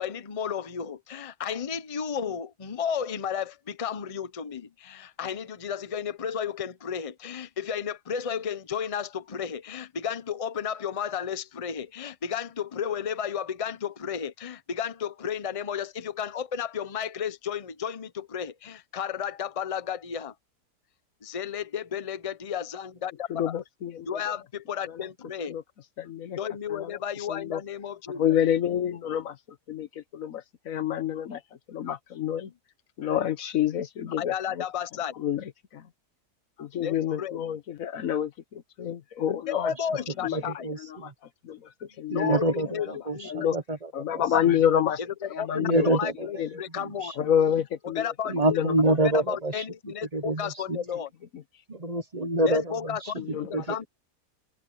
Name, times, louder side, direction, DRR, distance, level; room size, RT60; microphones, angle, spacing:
voice 1, 0.0-20.3 21.2-23.5 24.1-25.6 26.4-28.2 34.2-35.1 36.8-37.4 39.3-40.7 42.1-42.9 43.1-43.3 45.2-47.3 47.8-48.6 49.0-51.1 52.4-53.8, left 8 dB, 30° left, 0.8 m, -33 dB
voice 2, 23.3-24.2 24.9-25.0 25.5-25.6 26.0-26.4 26.7-27.0 27.3-27.6 28.1-29.4 29.7-31.4 31.7-32.5 33.0-34.6 35.2-35.8 36.6-39.7 40.2-40.4 40.8-41.1 41.4-42.4 43.2-43.5 43.9-45.0 45.3-46.0 46.4-46.6 47.2-48.1 48.5-48.8 53.2-53.7, left 9 dB, 60° left, 1.2 m, -28 dB
voice 3, 40.3-41.1 42.1-44.5 45.5-46.4 46.7-47.3 48.3-49.6 50.1-50.8 51.7-53.8, right 1 dB, 30° right, 1.0 m, -27 dB
open air
omnidirectional pair, 1.7 m